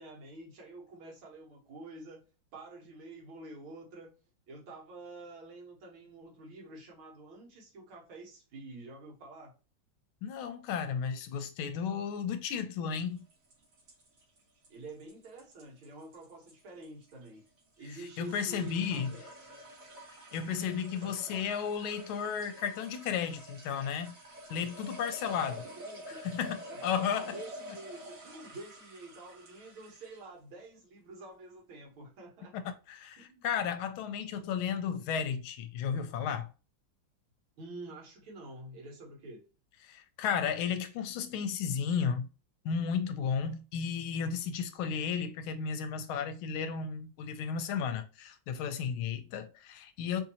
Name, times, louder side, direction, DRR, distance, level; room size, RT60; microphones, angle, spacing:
voice 1, 0.0-2.3 2.5-4.1 4.5-9.5 14.7-17.4 17.8-19.3 21.0-21.4 25.3-26.2 26.7-32.7 33.2-33.4 37.6-39.5, right 2 dB, 80° right, 2.1 m, -48 dB
voice 2, 10.2-13.2 18.2-19.1 20.3-24.1 24.5-25.6 26.2-27.4 32.9-36.5 39.8-42.3 42.6-50.2, left 7 dB, 85° left, 1.4 m, -33 dB
sound 1, 13.2-30.3, equal, 50° right, 1.3 m, -48 dB
4.0 x 2.7 x 2.8 m
omnidirectional pair, 2.2 m